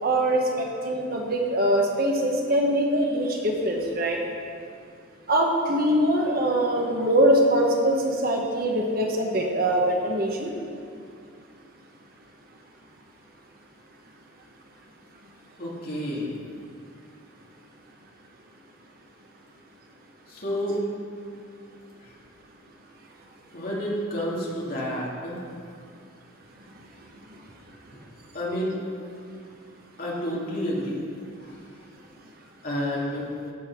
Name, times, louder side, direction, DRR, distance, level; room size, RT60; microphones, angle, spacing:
voice 1, 0.0-4.2 5.3-10.5, right 1 dB, 50° right, 0 dB, 1.3 m, -23 dB
voice 2, 15.6-16.4 20.3-20.8 22.0-22.1 23.5-25.4 28.3-28.8 30.0-31.0 32.6-33.3, equal, 45° left, -5 dB, 2.6 m, -29 dB
15.5 x 5.6 x 6.1 m, 2.3 s
head